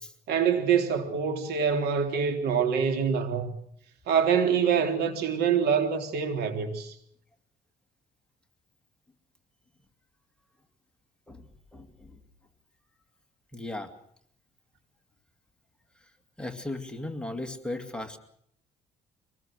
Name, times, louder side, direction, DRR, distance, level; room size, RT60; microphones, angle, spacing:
voice 1, 0.3-3.5 4.1-6.9, right 7 dB, 75° right, 3.7 m, -25 dB
voice 2, 11.3-12.2 13.5-13.9 16.4-18.2, left 2 dB, 5° left, 2.3 m, -37 dB
25.0 x 20.0 x 6.5 m
cardioid pair, 110°, 17 cm